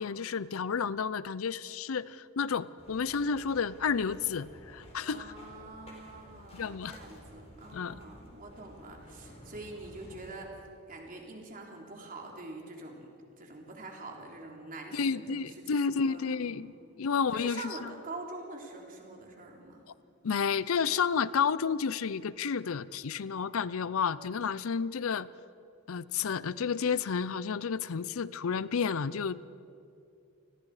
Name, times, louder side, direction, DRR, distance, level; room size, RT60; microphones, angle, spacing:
voice 1, 0.0-5.3 6.5-7.0 7.7-8.0 14.9-17.7 20.2-25.3 25.9-29.6, left 6 dB, 80° left, 18 dB, 0.5 m, -31 dB
sound 1, 2.8-10.4, equal, 30° left, 4.0 m, -52 dB
voice 2, 5.1-10.5 10.9-13.1 13.3-19.8, right 2 dB, 40° right, 0 dB, 3.4 m, -45 dB
29.0 x 20.0 x 4.9 m, 2.6 s
head